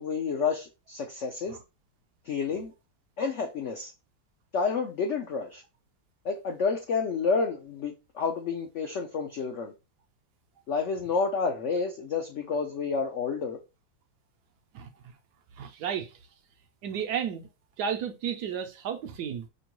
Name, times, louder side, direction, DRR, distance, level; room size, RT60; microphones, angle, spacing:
voice 1, 0.0-1.6 2.3-2.7 3.2-3.9 4.5-5.6 6.2-9.7 10.7-13.6, left 5 dB, 80° left, 0.6 m, -29 dB
voice 2, 15.6-16.1 16.8-17.5 17.8-19.5, right 8 dB, 75° right, 1.1 m, -32 dB
5.1 x 2.2 x 2.9 m
omnidirectional pair, 2.0 m